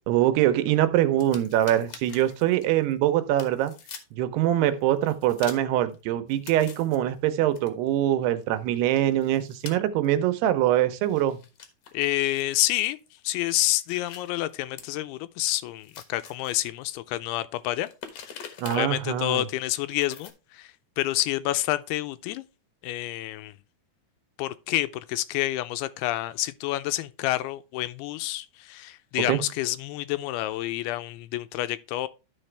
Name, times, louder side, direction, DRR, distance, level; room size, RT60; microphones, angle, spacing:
voice 1, 0.1-3.7 4.1-11.4 18.6-19.4 29.3-29.4, right 12 dB, 80° right, 2.8 m, -23 dB
sound 1, 1.2-3.0 3.4-4.0 4.7-5.9 6.3-8.7 8.9-9.7 10.0-10.2 10.9-15.0 15.2-15.3 15.7-16.8 17.5-19.0 19.9-20.3, left 7 dB, 65° left, 1.8 m, -45 dB
voice 2, 11.9-13.0 13.2-22.4 22.8-23.6 24.4-32.1, left 16 dB, 85° left, 2.5 m, -29 dB
13.0 x 4.9 x 3.3 m
omnidirectional pair, 4.7 m